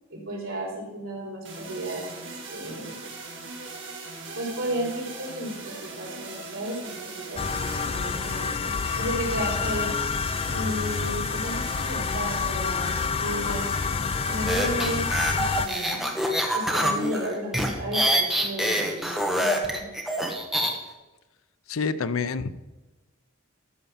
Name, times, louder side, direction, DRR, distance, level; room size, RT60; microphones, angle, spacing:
voice 1, 0.1-3.0 4.3-8.5 9.0-9.9 10.5-13.7 14.3-16.1 16.5-19.9, equal, 80° right, -4 dB, 4.6 m, -34 dB
sound 1, 1.5-17.5, right 3 dB, 60° right, 2.9 m, -40 dB
sound 2, 7.4-15.7, left 5 dB, 30° left, 0.4 m, -28 dB
sound 3, 14.5-20.7, equal, ahead, 1.3 m, -25 dB
voice 2, 21.7-22.5, left 5 dB, 85° left, 14 dB, 0.6 m, -27 dB
13.0 x 5.5 x 7.3 m, 1.1 s
head